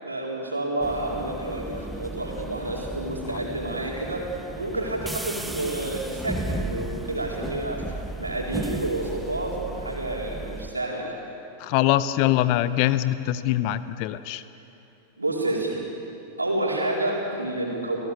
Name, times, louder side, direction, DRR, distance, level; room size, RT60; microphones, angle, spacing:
voice 1, 0.0-4.3 4.6-11.2 15.2-15.8 16.4-18.0, right 1 dB, 80° right, -2 dB, 4.2 m, -29 dB
sound 1, 0.8-10.7, right 2 dB, 5° right, 1.2 m, -35 dB
voice 2, 11.6-14.4, left 14 dB, 45° left, 14 dB, 0.7 m, -23 dB
29.5 x 18.0 x 6.9 m, 2.9 s
figure-of-eight pair, 90°, 0 cm